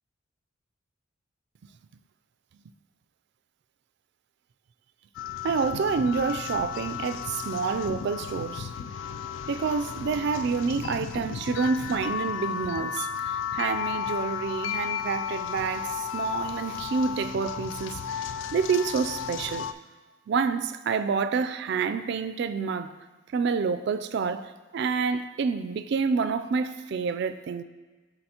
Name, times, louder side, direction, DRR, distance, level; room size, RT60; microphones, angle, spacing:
sound 1, 5.1-19.7, left 8 dB, 70° left, 0.3 m, -34 dB
voice 1, 5.4-8.7 9.5-19.7 20.3-22.9 23.3-27.6, right 5 dB, 60° right, 0.3 m, -28 dB
12.0 x 4.1 x 2.9 m
head